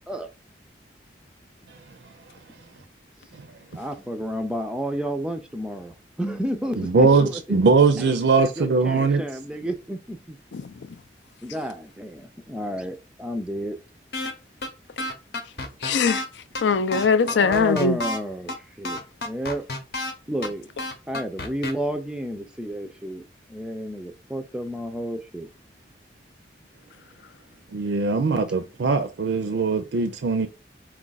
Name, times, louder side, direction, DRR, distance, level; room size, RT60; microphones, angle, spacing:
voice 1, 3.7-7.6 8.0-10.4 11.4-13.8 17.3-19.6 20.3-20.7 21.1-25.5, equal, 5° right, 0.3 m, -31 dB
voice 2, 6.8-9.2 27.7-30.5, right 4 dB, 80° right, 0.4 m, -20 dB
voice 3, 10.5-11.0 15.4-15.5 15.8-18.0, left 5 dB, 80° left, 0.4 m, -22 dB
sound 1, 14.1-14.3 14.6-14.7 15.0-16.2 16.5-16.6 16.9-18.2 18.5-18.6 18.8-20.1 20.4-20.5 20.8-21.7, left 2 dB, 60° left, 0.8 m, -30 dB
4.6 x 2.4 x 3.9 m
head